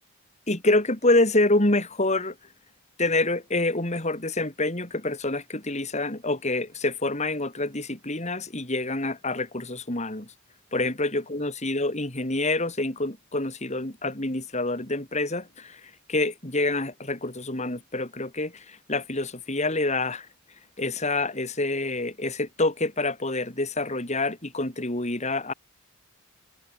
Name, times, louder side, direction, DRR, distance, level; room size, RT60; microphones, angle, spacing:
voice 1, 0.5-2.3 3.0-10.3 10.7-15.8 16.1-20.3 20.8-25.5, left 2 dB, 30° left, 3.3 m, -27 dB
head